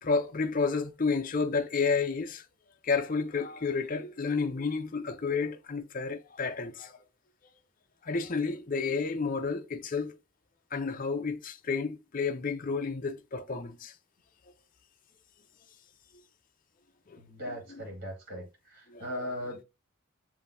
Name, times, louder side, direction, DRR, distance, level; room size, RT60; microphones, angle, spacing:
voice 1, 0.0-2.4 2.8-7.0 8.0-10.2 10.7-13.9 17.1-17.2 17.5-17.8 18.9-19.3, left 4 dB, 40° left, 0.5 m, -31 dB
voice 2, 17.2-19.6, equal, 45° right, 2.1 m, -39 dB
7.1 x 2.7 x 2.6 m
head